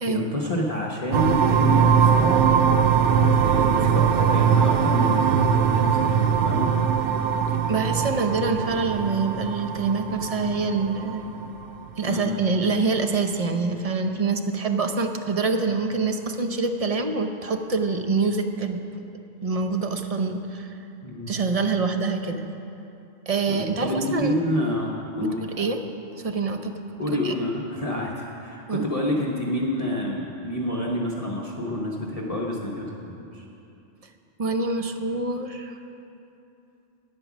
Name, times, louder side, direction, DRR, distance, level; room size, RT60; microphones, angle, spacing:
voice 1, 0.1-2.4 3.4-6.7 12.1-12.3 21.0-21.3 23.5-25.4 27.0-33.4, left 1 dB, 30° left, -4 dB, 1.0 m, -28 dB
sound 1, 1.1-11.6, right 7 dB, 70° right, 0.9 m, -21 dB
voice 2, 7.7-11.2 12.0-18.8 19.4-20.7 21.3-22.4 23.3-24.3 25.4-25.8 26.2-26.7 27.1-27.3 28.7-28.9 34.4-35.8, right 4 dB, 35° right, 6 dB, 0.7 m, -25 dB
12.0 x 9.9 x 6.1 m, 2.8 s
omnidirectional pair, 1.3 m